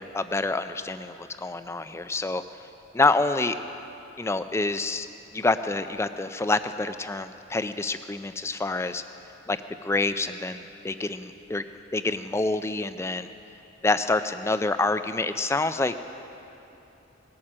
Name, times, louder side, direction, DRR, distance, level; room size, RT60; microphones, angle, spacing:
voice 1, 0.0-2.4 2.9-3.6 4.2-5.1 5.3-9.0 9.5-13.3 13.8-15.9, left 3 dB, 15° left, 11 dB, 0.3 m, -27 dB
19.0 x 8.7 x 6.1 m, 2.9 s
head